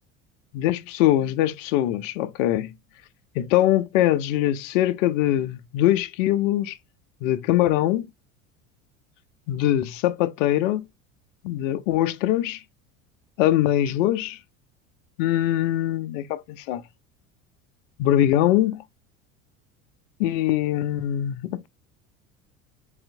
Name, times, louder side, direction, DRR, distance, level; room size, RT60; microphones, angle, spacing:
voice 1, 0.5-2.7 3.3-6.8 7.2-8.1 9.5-10.9 11.4-12.6 13.4-14.4 15.2-16.8 18.0-18.8 20.2-21.7, left 13 dB, 70° left, 0.6 m, -22 dB
4.8 x 2.7 x 2.6 m
hypercardioid pair, 75°, 40 cm